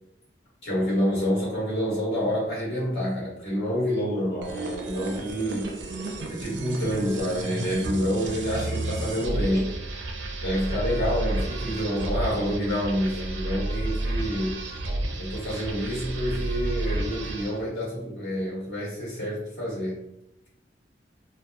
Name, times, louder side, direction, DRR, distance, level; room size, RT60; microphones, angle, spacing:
voice 1, 0.6-5.7 6.3-9.7 10.4-14.6 15.2-20.0, equal, 80° left, -6 dB, 1.5 m, -28 dB
sound 1, 4.4-17.6, right 1 dB, 80° right, 0.5 m, -31 dB
2.8 x 2.3 x 2.3 m, 0.81 s
head